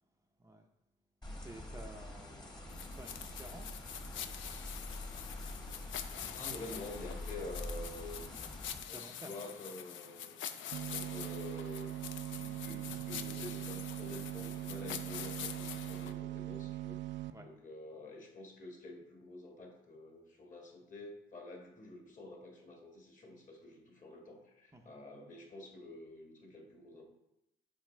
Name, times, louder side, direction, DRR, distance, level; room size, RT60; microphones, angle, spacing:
sound 1, 1.2-8.8, left 1 dB, 20° left, 1.2 m, -45 dB
voice 1, 1.3-3.8 4.2-4.3 8.8-9.3 17.3-17.5 24.7-24.9, right 1 dB, 15° right, 2 dB, 0.6 m, -53 dB
sound 2, 2.7-16.1, left 9 dB, 75° left, 0.5 m, -45 dB
voice 2, 6.2-8.4 8.9-10.4 10.9-11.9 12.3-17.0 17.4-27.0, left 2 dB, 40° left, 1 dB, 1.7 m, -48 dB
sound 3, 10.7-17.3, right 14 dB, 70° right, 0.4 m, -41 dB
7.3 x 4.8 x 3.2 m, 0.89 s
cardioid pair, 90°, 20 cm